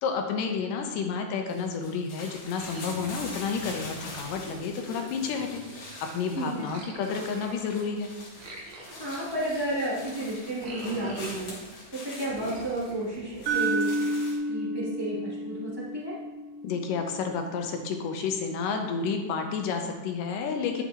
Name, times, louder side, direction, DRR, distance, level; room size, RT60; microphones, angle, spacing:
voice 1, 0.0-8.1 16.6-20.8, left 5 dB, 80° left, 4 dB, 2.4 m, -30 dB
sound 1, 1.5-14.4, left 2 dB, 55° left, 2.7 m, -44 dB
sound 2, 2.5-6.2 6.6-11.8 12.2-13.9, right 1 dB, 55° right, 1.5 m, -45 dB
voice 2, 6.3-6.7 9.0-11.5 11.9-14.1 14.5-16.2, right 1 dB, 10° right, -9 dB, 2.1 m, -32 dB
sound 3, 13.5-17.5, right 1 dB, 85° right, 3.1 m, -31 dB
11.0 x 6.8 x 3.0 m, 1.3 s
omnidirectional pair, 3.9 m